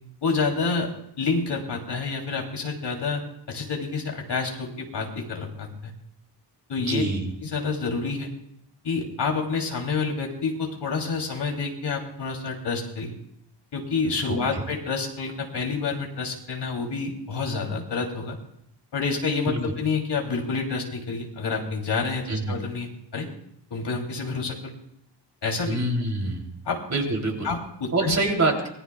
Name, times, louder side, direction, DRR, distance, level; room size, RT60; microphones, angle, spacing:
voice 1, 0.2-3.2 3.5-5.9 6.7-7.0 7.4-8.3 8.8-13.2 13.7-18.3 18.9-23.3 23.7-24.7 25.4-25.8 26.6-26.8 27.4-28.2, left 4 dB, 70° left, 1 dB, 3.2 m, -28 dB
voice 2, 6.9-7.3 14.3-14.6 19.5-19.6 22.3-22.6 25.6-26.4 26.9-27.5 27.9-28.7, right 2 dB, 40° right, 1 dB, 3.3 m, -25 dB
25.5 x 19.0 x 2.3 m, 0.72 s
wide cardioid pair, 130°, 43 cm